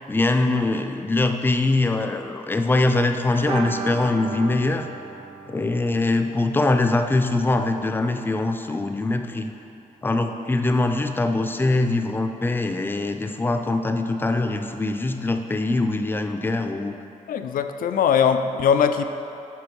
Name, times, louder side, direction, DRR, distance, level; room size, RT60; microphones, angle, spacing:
voice 1, 0.1-4.9 5.5-9.5 10.0-17.0, left 2 dB, 15° left, 6 dB, 0.4 m, -23 dB
sound 1, 3.4-9.0 9.3-9.4 9.7-9.8, right 3 dB, 40° right, 0.7 m, -37 dB
voice 2, 17.3-19.0, left 7 dB, 90° left, 8 dB, 0.5 m, -20 dB
11.5 x 4.5 x 4.6 m, 2.8 s
wide cardioid pair, 115°, 14 cm